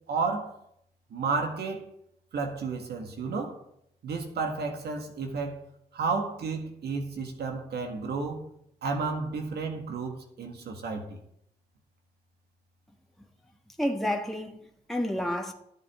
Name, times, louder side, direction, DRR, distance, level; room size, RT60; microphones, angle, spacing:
voice 1, 0.1-0.5 1.1-1.9 2.3-3.6 4.0-5.6 5.9-8.4 8.8-11.2, right 4 dB, 80° right, 1.8 m, -32 dB
voice 2, 13.8-15.5, left 1 dB, ahead, 1.5 m, -30 dB
13.0 x 8.4 x 3.7 m
supercardioid pair, 45°, 17 cm